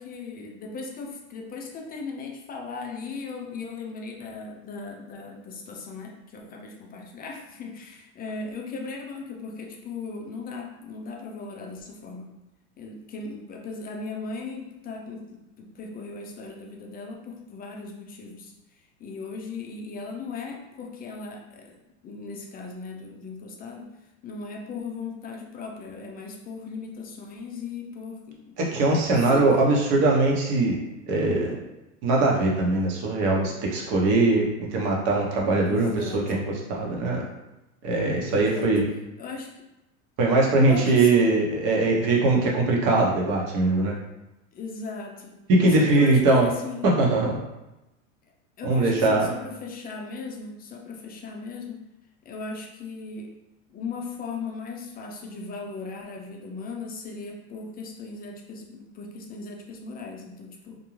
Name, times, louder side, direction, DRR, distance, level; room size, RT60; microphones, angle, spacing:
voice 1, 0.0-12.3 12.8-18.5 19.0-21.7 22.0-23.9 24.2-28.8 29.2-29.6 35.6-36.2 38.2-38.7 39.2-39.5 40.5-41.4 44.5-45.4 45.8-46.9 48.6-51.8 52.3-53.3 53.7-60.8, left 4 dB, 25° left, 1 dB, 0.4 m, -37 dB
voice 2, 28.6-30.8 31.1-31.5 32.0-36.4 36.7-37.3 37.8-38.8 40.2-43.9 45.5-46.5 46.8-47.4 48.6-49.3, right 2 dB, 55° right, -2 dB, 0.9 m, -21 dB
2.6 x 2.2 x 3.0 m, 0.95 s
supercardioid pair, 110°, 38 cm